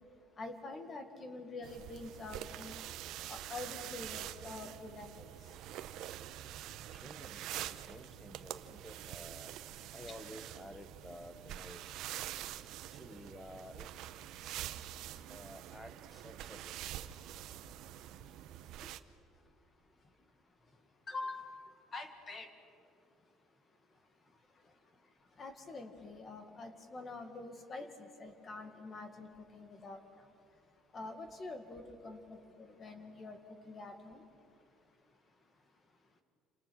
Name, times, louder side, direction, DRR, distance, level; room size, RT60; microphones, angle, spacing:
voice 1, 0.4-2.8 3.3-5.3 21.1-22.5 25.4-30.0 30.9-34.2, left 3 dB, 25° left, 7 dB, 2.0 m, -46 dB
sound 1, 1.6-19.0, right 12 dB, 60° right, 0.9 m, -46 dB
voice 2, 6.9-9.5 9.9-12.0 12.9-13.9 14.4-14.8 15.3-16.7 18.8-18.9 27.8-27.9, left 1 dB, 10° left, 10 dB, 1.1 m, -52 dB
28.5 x 27.0 x 6.3 m, 2.6 s
cardioid pair, 175°, 0 cm